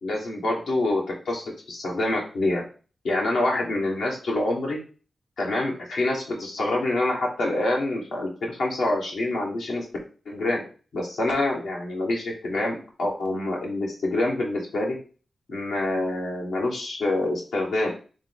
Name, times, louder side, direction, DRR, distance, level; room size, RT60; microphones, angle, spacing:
voice 1, 0.0-2.6 3.0-4.8 5.4-9.8 10.2-10.6 10.9-15.0 15.5-17.9, left 2 dB, 85° left, -2 dB, 1.4 m, -26 dB
3.6 x 3.3 x 3.7 m, 0.37 s
cardioid pair, 45°, 0 cm